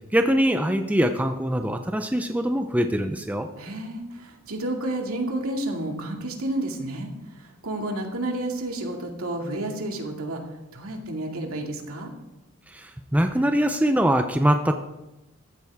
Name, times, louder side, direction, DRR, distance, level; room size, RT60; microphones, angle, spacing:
voice 1, 0.1-3.5 12.7-14.7, equal, 5° right, 6 dB, 0.6 m, -23 dB
voice 2, 3.6-10.4 10.7-12.1, right 1 dB, 80° right, 1 dB, 2.4 m, -31 dB
15.0 x 13.0 x 3.6 m, 0.97 s
head